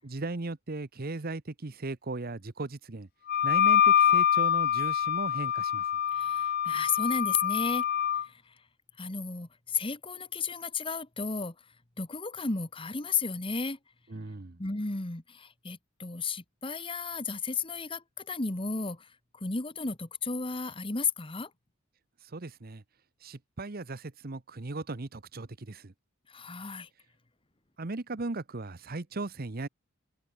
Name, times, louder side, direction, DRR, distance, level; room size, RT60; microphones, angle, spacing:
voice 1, 0.0-3.1 3.4-5.9 14.1-14.6 22.2-22.8 23.2-25.9 27.8-29.7, right 2 dB, 45° right, 1.0 m, -37 dB
Wind instrument woodwind instrument, 3.3-8.2, left 9 dB, 50° left, 0.4 m, -25 dB
voice 2, 6.1-7.8 8.1-8.6 9.0-11.5 12.0-13.8 14.6-21.5 26.3-26.9, left 4 dB, 25° left, 1.4 m, -33 dB
head